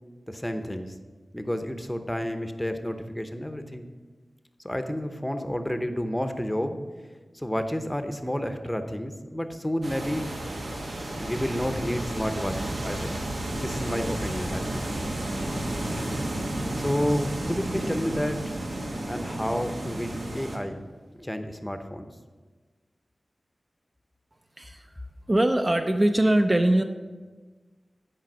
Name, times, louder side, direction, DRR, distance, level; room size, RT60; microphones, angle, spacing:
voice 1, 0.3-1.0 1.3-3.9 4.6-6.8 7.3-10.3 11.2-13.2 13.5-14.9 16.7-18.6 19.1-20.8 21.2-22.1, equal, 10° left, 7 dB, 0.7 m, -30 dB
sound 1, 9.8-20.6, right 1 dB, 75° right, 1.4 m, -32 dB
Rain, 14.3-21.4, right 1 dB, 60° right, 1.2 m, -44 dB
voice 2, 25.3-26.8, right 1 dB, 30° right, 5 dB, 0.5 m, -21 dB
10.5 x 5.0 x 6.2 m, 1.4 s
wide cardioid pair, 70°, 0 cm